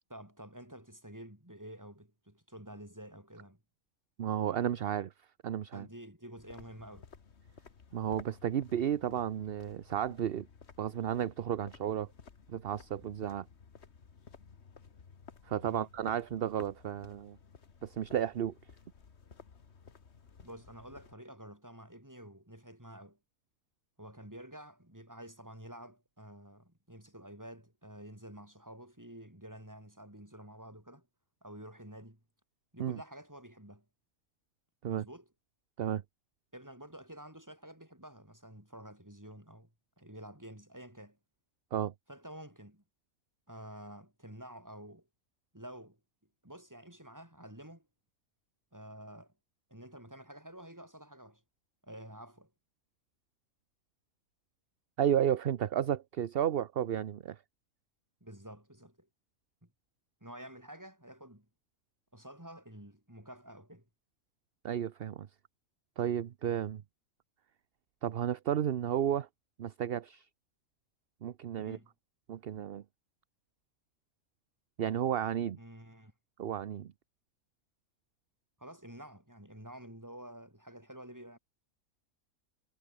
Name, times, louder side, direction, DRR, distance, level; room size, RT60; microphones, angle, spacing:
voice 1, 0.1-3.6 5.7-7.1 15.6-15.9 20.4-23.2 24.0-31.1 31.4-32.2 32.7-33.8 34.9-35.3 36.5-39.7 40.0-41.2 42.1-42.8 43.5-45.1 45.5-46.0 46.4-47.9 48.7-49.3 49.7-51.4 51.8-52.5 58.2-59.1 59.6-59.7 60.2-61.5 62.1-63.9 71.6-71.9 75.6-76.1 78.6-81.4, right 1 dB, 10° right, 5.0 m, -50 dB
voice 2, 4.2-5.1 5.4-5.9 7.9-10.5 10.8-12.1 12.5-13.5 15.4-17.4 17.8-18.5 32.8-33.0 34.8-35.0 35.8-36.0 41.7-41.9 55.0-57.4 64.6-65.3 66.0-66.8 68.0-69.3 69.6-70.3 71.2-71.8 72.3-72.8 74.8-75.6 76.4-76.9, right 10 dB, 50° right, 0.8 m, -32 dB
sound 1, 6.4-21.1, left 6 dB, 50° left, 1.7 m, -56 dB
omnidirectional pair, 1.5 m